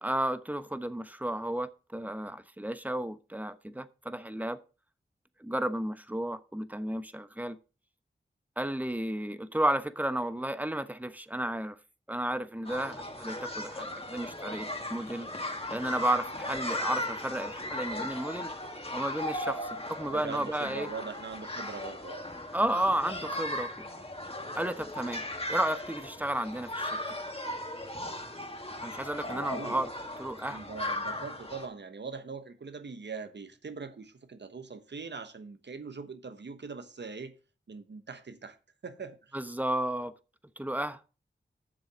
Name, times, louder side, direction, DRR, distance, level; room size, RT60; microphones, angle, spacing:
voice 1, 0.0-4.6 5.4-7.6 8.6-11.8 12.1-15.3 15.7-18.5 18.9-20.9 22.5-23.7 24.5-25.2 25.5-27.2 28.8-29.9 30.2-30.6 39.3-40.1 40.6-41.0, right 1 dB, 10° right, 0.9 m, -32 dB
sound 1, 12.6-31.7, left 1 dB, 30° left, 2.3 m, -37 dB
voice 2, 20.0-22.3 29.2-29.8 30.5-37.3 37.7-38.6 38.8-39.4, right 5 dB, 65° right, 1.1 m, -42 dB
7.6 x 6.7 x 6.1 m
cardioid pair, 45°, 19 cm